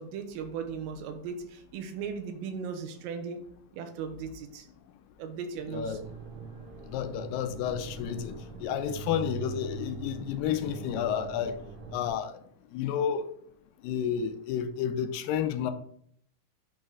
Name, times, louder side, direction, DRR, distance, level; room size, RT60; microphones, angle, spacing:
voice 1, 0.0-3.4 3.7-4.7 5.2-6.0, right 6 dB, 90° right, 2.5 m, -37 dB
voice 2, 5.7-6.0 6.9-11.6 11.9-12.3 12.7-13.3 13.8-15.7, left 8 dB, 85° left, 2.2 m, -31 dB
sound 1, 5.8-12.1, right 6 dB, 65° right, 1.9 m, -42 dB
8.6 x 3.2 x 3.6 m
omnidirectional pair, 4.0 m